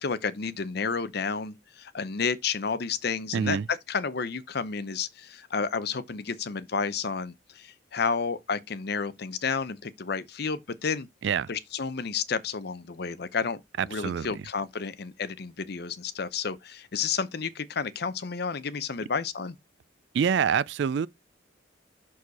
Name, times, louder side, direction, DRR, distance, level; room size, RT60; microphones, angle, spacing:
voice 1, 0.0-11.1 11.5-19.5, left 5 dB, 55° left, 0.6 m, -31 dB
voice 2, 3.3-3.7 11.2-11.5 13.8-14.4 20.1-21.1, right 7 dB, 60° right, 0.3 m, -26 dB
6.3 x 4.6 x 4.1 m
head